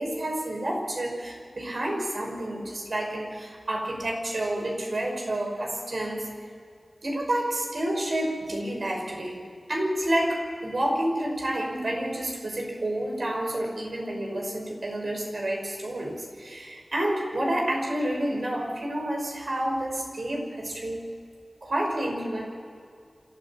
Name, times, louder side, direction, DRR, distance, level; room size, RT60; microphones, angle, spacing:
voice 1, 0.0-6.3 7.0-21.1 21.6-22.4, right 1 dB, 75° right, 0 dB, 5.7 m, -29 dB
28.0 x 14.5 x 7.2 m, 2.2 s
wide cardioid pair, 60°, 0 cm